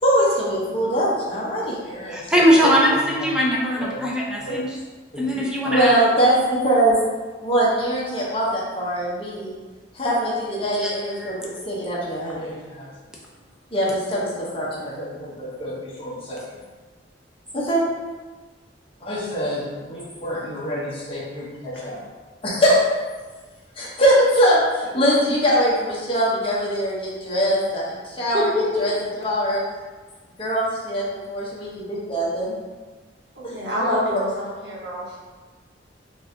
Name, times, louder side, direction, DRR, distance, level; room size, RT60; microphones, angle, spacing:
voice 1, 0.0-3.0 3.8-4.0 4.4-4.6 5.1-7.0 7.4-9.5 9.9-12.9 13.7-16.6 17.5-17.8 19.0-22.0 22.4-22.8 23.8-28.5 28.8-29.6 30.4-32.5, equal, 30° left, -6 dB, 1.0 m, -23 dB
voice 2, 2.1-4.8 5.2-6.0 10.8-10.9 11.2-11.3, equal, 5° right, -4 dB, 0.6 m, -20 dB
voice 3, 28.3-28.8 33.4-35.2, left 1 dB, 75° right, -7 dB, 1.4 m, -25 dB
4.6 x 2.7 x 2.7 m, 1.3 s
head